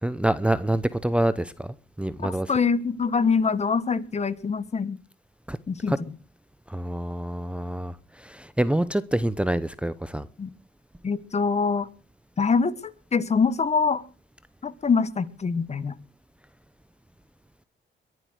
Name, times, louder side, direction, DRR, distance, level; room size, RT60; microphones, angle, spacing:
voice 1, 0.0-2.5 5.5-5.6 5.9-6.0 6.7-10.3, right 1 dB, 5° right, 0.7 m, -26 dB
voice 2, 2.2-5.0 5.7-5.9 10.4-10.5 11.0-11.9 12.4-14.0 14.6-15.9, left 5 dB, 35° left, 1.3 m, -24 dB
22.0 x 7.9 x 6.4 m
cardioid pair, 90°, 20 cm